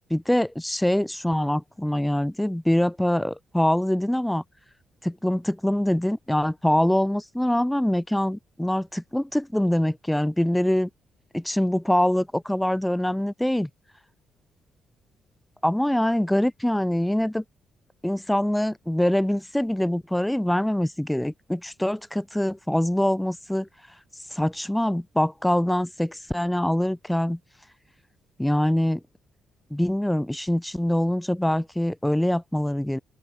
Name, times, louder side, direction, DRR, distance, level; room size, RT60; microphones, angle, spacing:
voice 1, 0.1-4.4 5.0-10.9 11.3-13.7 15.6-17.4 18.0-23.7 24.3-27.4 28.4-29.0 29.7-33.0, left 1 dB, 5° left, 0.6 m, -24 dB
open air
cardioid pair, 90°, 0 cm